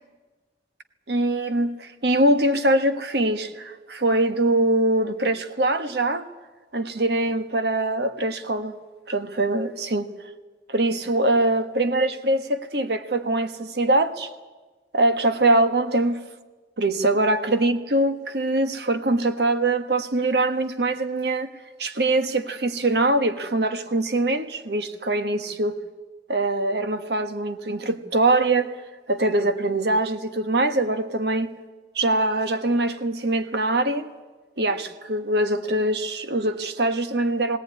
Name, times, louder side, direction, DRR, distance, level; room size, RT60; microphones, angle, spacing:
voice 1, 1.1-6.3 6.7-8.7 9.1-10.1 10.7-14.3 14.9-16.2 16.8-21.5 21.8-25.8 26.3-28.7 29.1-31.5 31.9-34.1 34.6-37.6, right 2 dB, 70° right, 9 dB, 1.4 m, -23 dB
18.5 x 18.0 x 9.6 m, 1.3 s
head